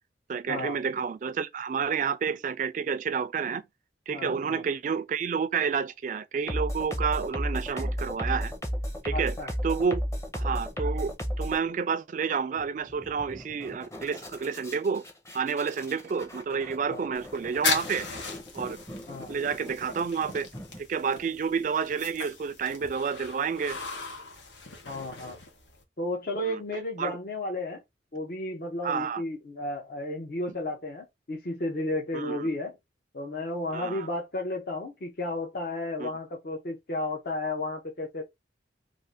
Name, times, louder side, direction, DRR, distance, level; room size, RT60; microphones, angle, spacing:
voice 1, 0.3-3.6 4.1-8.5 9.0-10.0 10.3-15.0 15.3-18.1 18.5-18.8 19.3-20.5 20.8-23.8 26.4-26.6 27.0-27.2 28.8-29.2 32.1-32.5 33.7-34.1 36.0-36.1, right 6 dB, 45° right, 0.3 m, -30 dB
voice 2, 4.1-4.6 9.1-9.5 16.8-17.0 19.1-19.4 24.9-25.4 26.0-27.8 28.1-32.7 33.1-38.2, left 2 dB, 55° left, 0.7 m, -33 dB
sound 1, 6.5-11.6 12.6-12.7 12.9-20.8, equal, 15° left, 0.7 m, -34 dB
sound 2, 17.1-25.8, left 4 dB, 90° left, 0.9 m, -37 dB
2.6 x 2.4 x 3.4 m
head